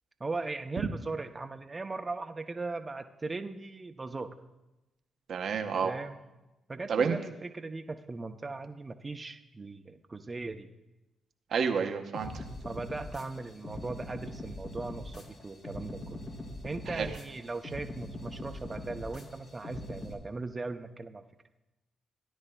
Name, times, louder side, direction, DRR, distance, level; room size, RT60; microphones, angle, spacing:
voice 1, 0.2-4.3 5.8-6.2 6.7-10.7 12.6-16.2 16.6-21.2, right 3 dB, 30° right, 6 dB, 0.6 m, -38 dB
voice 2, 5.3-5.9 6.9-7.2 11.5-12.4 16.9-17.1, right 6 dB, 65° right, 6 dB, 0.8 m, -29 dB
sound 1, 12.1-20.1, left 1 dB, 70° left, 2.3 m, -42 dB
17.0 x 9.8 x 2.3 m, 1.0 s
supercardioid pair, 60°, 0 cm